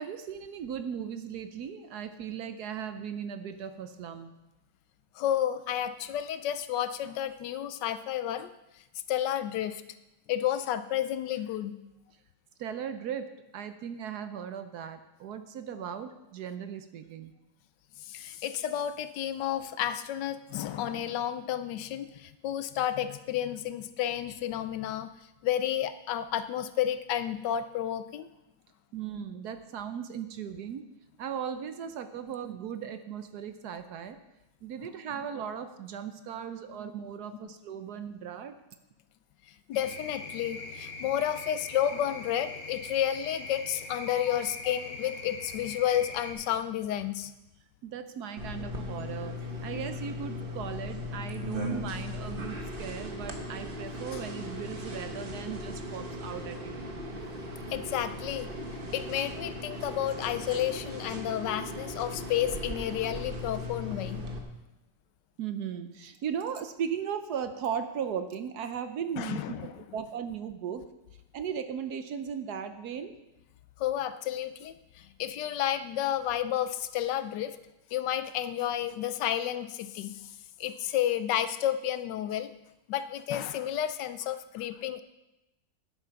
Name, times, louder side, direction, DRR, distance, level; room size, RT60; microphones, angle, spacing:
voice 1, 0.0-4.3 12.6-17.3 28.9-30.8 31.2-34.2 34.6-38.6 47.8-56.9 65.4-69.6 69.9-70.8 71.3-73.1, right 8 dB, 65° right, 10 dB, 1.1 m, -37 dB
voice 2, 5.2-8.5 9.1-9.8 10.3-11.8 18.0-25.1 25.4-28.3 39.7-47.3 57.7-58.5 58.9-64.2 69.2-69.7 73.8-77.6 77.9-80.2 80.6-82.5 82.9-85.0, left 11 dB, 75° left, 12 dB, 1.2 m, -31 dB
sound 1, 39.7-46.3, left 3 dB, 45° left, 2.0 m, -42 dB
sound 2, 48.4-64.4, left 1 dB, 35° right, 1.2 m, -38 dB
9.9 x 8.8 x 5.7 m, 0.95 s
omnidirectional pair, 2.0 m